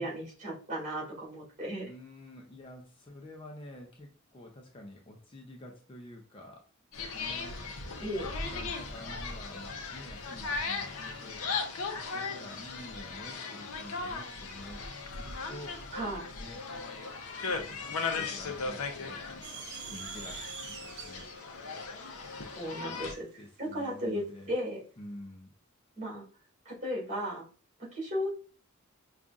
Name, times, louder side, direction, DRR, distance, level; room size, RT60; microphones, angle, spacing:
voice 1, 0.0-1.9 8.0-8.3 15.9-16.3 22.6-23.3 23.6-24.8 26.0-26.2 26.7-27.5 27.9-28.3, equal, 35° right, -4 dB, 1.9 m, -35 dB
voice 2, 1.9-6.7 7.1-7.6 8.4-11.5 11.9-15.8 16.3-16.8 17.5-21.3 22.9-23.1 23.4-24.5 25.0-25.5, left 1 dB, 25° left, 1 dB, 0.5 m, -49 dB
sound 1, 6.9-23.1, left 4 dB, 85° left, 0.6 m, -37 dB
sound 2, 19.4-23.9, right 7 dB, 50° right, 0.6 m, -45 dB
5.3 x 2.4 x 2.3 m, 0.38 s
head